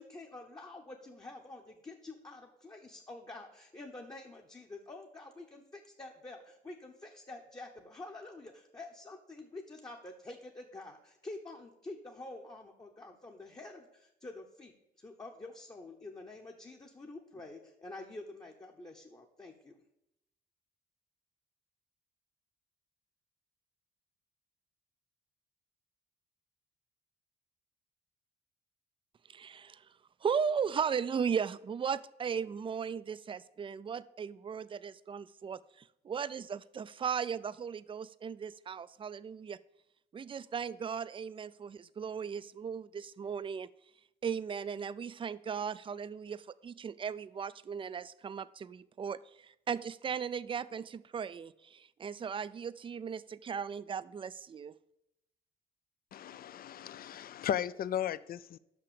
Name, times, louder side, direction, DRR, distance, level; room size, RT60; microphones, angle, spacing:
voice 1, 0.0-19.8, left 2 dB, 20° left, 1 dB, 0.9 m, -48 dB
voice 2, 29.3-29.8 30.2-35.6 36.0-39.6 40.1-43.7 44.2-54.7, right 7 dB, 25° right, 16 dB, 0.3 m, -37 dB
voice 3, 56.1-58.6, left 10 dB, 50° left, 18 dB, 0.4 m, -36 dB
6.0 x 5.8 x 6.9 m, 0.84 s
cardioid pair, 90°, 20 cm